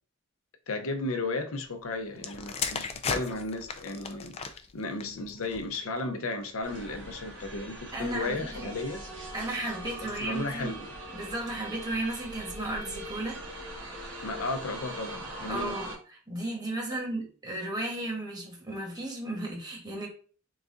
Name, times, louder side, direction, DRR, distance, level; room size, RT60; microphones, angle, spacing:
voice 1, 0.7-4.4 4.7-9.0 10.0-10.9 14.2-15.8, left 2 dB, 85° left, 0.7 m, -34 dB
sound 1, 2.2-6.0 6.8-7.1, left 5 dB, 30° left, 0.3 m, -36 dB
sound 2, 6.6-16.0, right 1 dB, 65° right, 1.6 m, -41 dB
voice 2, 7.9-8.7 9.3-10.7 11.1-13.4 15.5-20.1, right 2 dB, 20° right, 1.3 m, -34 dB
3.9 x 2.4 x 3.8 m
head